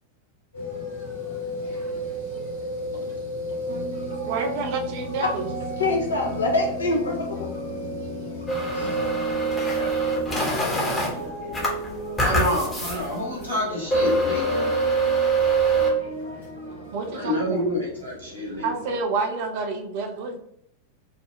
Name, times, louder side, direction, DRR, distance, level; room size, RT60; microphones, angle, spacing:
sound 1, 0.5-19.0, equal, 90° right, 1.4 m, -36 dB
voice 1, 2.9-3.6 9.6-11.2 12.2-14.7 17.1-18.7, equal, 90° left, -5 dB, 1.2 m, -30 dB
sound 2, 3.7-17.4, equal, 75° right, 0.9 m, -36 dB
voice 2, 4.2-5.5 16.9-17.6 18.6-20.4, right 3 dB, 50° right, 3 dB, 0.5 m, -28 dB
voice 3, 5.8-7.5 8.7-9.0, left 2 dB, 75° left, 2 dB, 0.6 m, -25 dB
sound 3, 8.5-11.1 11.5-13.0 13.4-13.5 13.9-15.9, right 2 dB, 15° left, 0.9 m, -23 dB
3.5 x 2.0 x 2.2 m, 0.72 s
figure-of-eight pair, 90°, 0 cm